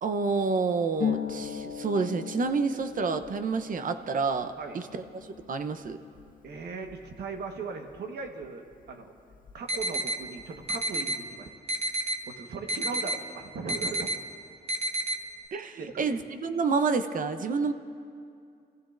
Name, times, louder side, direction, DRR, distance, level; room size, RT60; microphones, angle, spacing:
voice 1, 0.0-6.0 15.5-17.7, right 4 dB, 55° right, 9 dB, 0.8 m, -29 dB
Harp, 1.0-8.5 8.7-9.8 10.1-10.8, left 8 dB, 55° left, 0.9 m, -39 dB
voice 2, 6.4-9.1 9.5-11.5 12.3-14.1 15.8-16.2, right 4 dB, 75° right, 4 dB, 1.4 m, -38 dB
sound 1, 9.7-10.2 10.7-11.2 11.7-12.2 12.7-13.2 13.7-14.2 14.7-15.2, right 1 dB, 40° right, 1.1 m, -29 dB
28.0 x 15.0 x 2.6 m, 2.4 s
cardioid pair, 90°, 17 cm